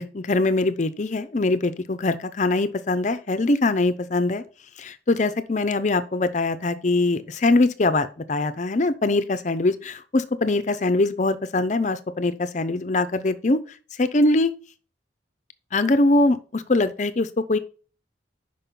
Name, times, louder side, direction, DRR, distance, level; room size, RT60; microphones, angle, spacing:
voice 1, 0.0-4.4 4.8-13.6 14.0-14.5 15.7-17.6, left 2 dB, 40° left, 13 dB, 0.5 m, -22 dB
5.3 x 5.3 x 5.8 m, 0.37 s
head